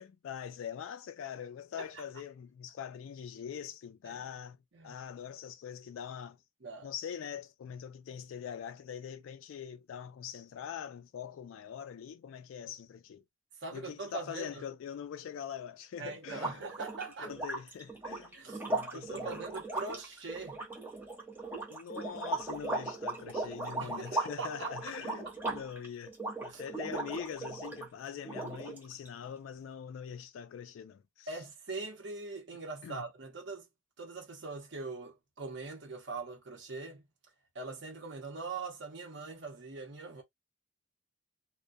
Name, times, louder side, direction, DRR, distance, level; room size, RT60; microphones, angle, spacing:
voice 1, 0.0-4.6 4.8-6.4 6.8-13.2 13.7-16.7 17.2-18.4 18.7-19.4 21.7-26.1 26.4-31.3 32.8-33.0, left 8 dB, 80° left, 0.3 m, -43 dB
voice 2, 13.6-14.6 16.0-17.3 18.3-20.6 23.8-24.7 26.5-26.6 31.3-33.7 34.0-37.1 37.5-40.2, right 3 dB, 60° right, 0.8 m, -42 dB
sound 1, 16.3-27.9 28.2-29.1, right 2 dB, 10° right, 0.8 m, -38 dB
2.2 x 2.1 x 2.6 m
head